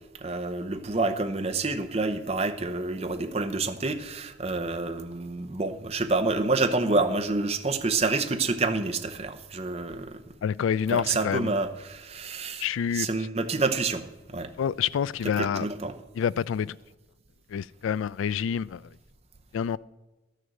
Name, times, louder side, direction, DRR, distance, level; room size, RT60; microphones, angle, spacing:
voice 1, 0.2-10.2 10.9-14.1 14.3-14.5 15.2-16.0, right 3 dB, 30° right, 0.7 m, -28 dB
voice 2, 10.4-11.5 12.6-13.1 14.6-15.7 16.2-16.8 17.5-18.8 19.5-19.8, left 7 dB, 85° left, 0.3 m, -27 dB
12.0 x 6.6 x 7.7 m
head